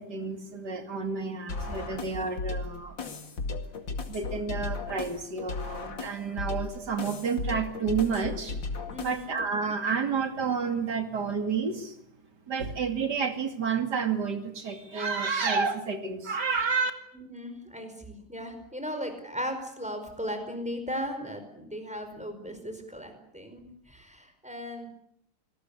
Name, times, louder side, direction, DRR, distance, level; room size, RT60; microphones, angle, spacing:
voice 1, 0.0-3.0 4.1-12.0 12.5-16.9, right 5 dB, 50° right, 7 dB, 2.9 m, -30 dB
sound 1, 1.5-9.5, left 3 dB, 60° left, 3.0 m, -36 dB
voice 2, 8.9-9.3 17.1-24.9, equal, 5° right, 6 dB, 4.9 m, -37 dB
26.0 x 19.0 x 8.5 m, 0.72 s
omnidirectional pair, 2.3 m